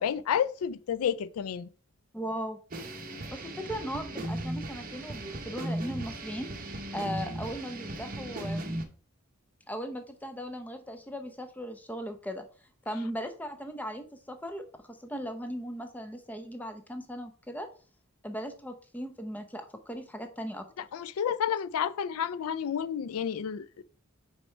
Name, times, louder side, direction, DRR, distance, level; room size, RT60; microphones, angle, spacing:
voice 1, 0.0-1.7 20.9-23.8, left 8 dB, 85° left, 0.4 m, -30 dB
voice 2, 2.1-2.6 3.3-8.9 9.7-12.5 12.9-17.7 18.2-20.9, equal, 10° left, 0.6 m, -38 dB
sound 1, 2.7-8.8, right 1 dB, 40° right, 0.9 m, -37 dB
5.3 x 4.3 x 4.4 m
head